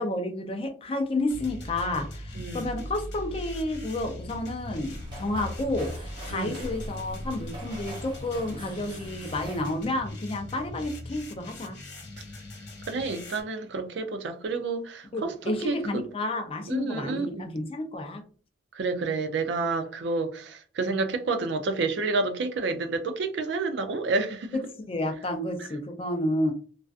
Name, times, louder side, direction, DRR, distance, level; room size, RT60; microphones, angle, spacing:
voice 1, 0.0-11.8 15.1-18.2 24.8-26.5, left 1 dB, 30° left, 0.4 m, -31 dB
sound 1, 1.3-13.4, left 1 dB, 60° left, 0.7 m, -40 dB
voice 2, 2.4-2.7 6.3-6.6 12.9-16.0 16.7-17.6 18.7-24.6, right 3 dB, 60° right, 0.4 m, -29 dB
sound 2, 4.6-9.9, right 1 dB, 25° right, 0.8 m, -42 dB
2.4 x 2.3 x 2.4 m
head